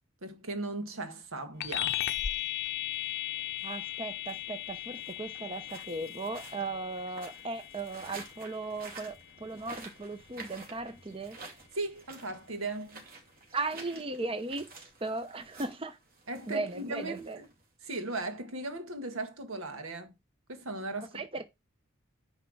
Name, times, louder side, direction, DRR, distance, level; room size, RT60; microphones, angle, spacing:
voice 1, 0.2-2.0 11.7-13.1 16.3-17.5 17.8-20.1 20.5-21.2, right 2 dB, 80° right, 1.7 m, -37 dB
sound 1, 1.6-11.4, left 12 dB, 50° left, 0.6 m, -38 dB
sound 2, 2.2-17.9, right 3 dB, 45° right, 2.7 m, -52 dB
voice 2, 3.6-11.4 13.5-14.7 15.0-16.0 16.5-17.4 21.1-21.4, right 3 dB, 25° right, 0.7 m, -37 dB
10.0 x 3.4 x 6.4 m
head